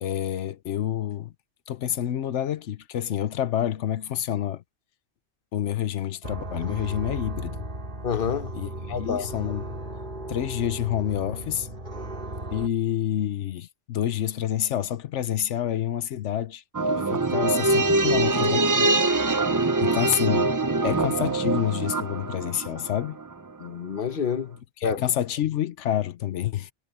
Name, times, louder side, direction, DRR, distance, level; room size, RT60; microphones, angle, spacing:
voice 1, 0.0-1.3 1.7-4.6 5.5-7.7 8.5-9.8 10.3-11.7 12.5-16.6 17.1-18.9 19.8-20.5 20.8-23.2 24.8-26.7, left 11 dB, 85° left, 1.1 m, -28 dB
sound 1, 6.2-12.7, right 1 dB, 45° right, 4.6 m, -36 dB
voice 2, 8.0-8.6 8.9-9.3 23.6-25.0, left 6 dB, 55° left, 1.2 m, -28 dB
sound 2, 16.7-23.3 23.6-23.7, right 2 dB, 20° right, 0.5 m, -24 dB
omnidirectional pair, 1.2 m